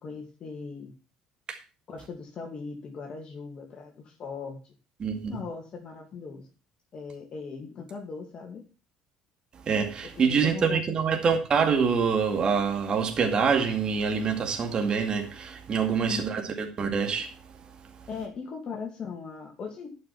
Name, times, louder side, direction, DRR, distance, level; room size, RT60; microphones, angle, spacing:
voice 1, 0.0-0.9 1.9-4.7 5.3-6.5 6.9-8.6 10.2-11.2 16.1-16.3 18.1-19.9, left 5 dB, 45° left, 2.5 m, -39 dB
voice 2, 5.0-5.4 9.7-17.3, right 6 dB, 45° right, 2.3 m, -25 dB
11.5 x 6.5 x 6.0 m
hypercardioid pair, 60°, 2 cm